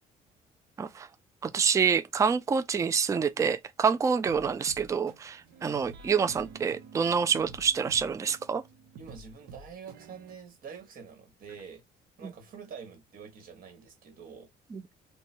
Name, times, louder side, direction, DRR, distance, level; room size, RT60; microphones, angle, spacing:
voice 1, 1.4-8.6 14.7-14.8, right 6 dB, 20° right, 0.3 m, -27 dB
sound 1, 4.3-10.4, right 4 dB, 75° right, 0.8 m, -49 dB
voice 2, 9.0-11.8 12.2-14.5, right 6 dB, 60° right, 1.5 m, -46 dB
2.9 x 2.2 x 4.2 m
cardioid pair, 110°, 17 cm